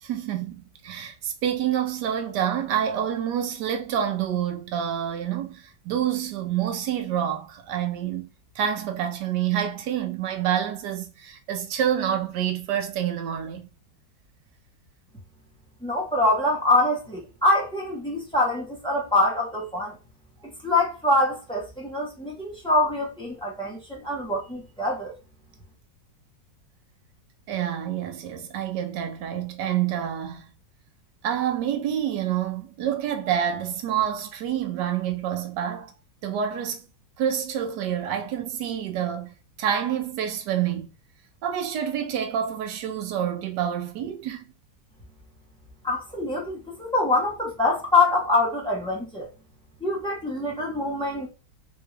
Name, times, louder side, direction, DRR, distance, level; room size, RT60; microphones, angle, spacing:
voice 1, 0.0-8.3 8.6-13.7 27.5-30.5 31.2-35.9 36.2-36.9 37.2-40.9 41.4-44.5, right 9 dB, 75° right, 1.2 m, -27 dB
voice 2, 15.8-20.0 20.4-25.1 45.8-49.3 49.8-51.3, left 2 dB, 5° left, 0.6 m, -24 dB
3.5 x 2.3 x 3.1 m
omnidirectional pair, 1.9 m